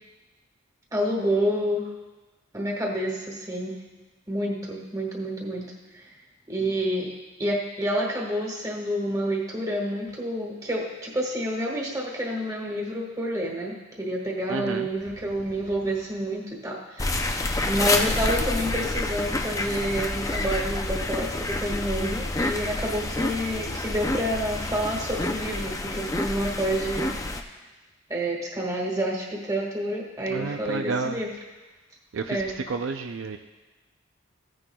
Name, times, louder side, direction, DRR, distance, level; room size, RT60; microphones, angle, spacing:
voice 1, 0.9-1.9 2.5-3.8 4.3-5.6 5.9-6.1 6.5-27.1 28.1-31.3 32.3-32.5, equal, 15° right, -2 dB, 1.6 m, -29 dB
voice 2, 14.5-14.9 30.3-31.2 32.1-32.4 32.7-33.4, right 4 dB, 70° right, 5 dB, 0.5 m, -30 dB
sound 1, 17.0-27.4, left 2 dB, 15° left, 0.5 m, -28 dB
15.5 x 9.9 x 2.3 m, 1.2 s
head